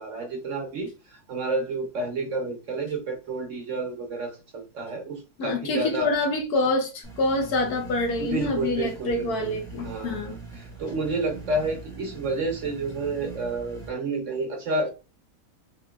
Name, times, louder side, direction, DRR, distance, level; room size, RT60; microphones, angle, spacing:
voice 1, 0.0-6.1 8.2-9.5 9.8-14.9, right 2 dB, 60° right, 0.9 m, -30 dB
voice 2, 5.4-10.4, left 2 dB, 65° left, 1.2 m, -26 dB
sound 1, 7.0-13.9, right 4 dB, 5° left, 0.8 m, -42 dB
3.8 x 2.9 x 2.2 m
omnidirectional pair, 1.8 m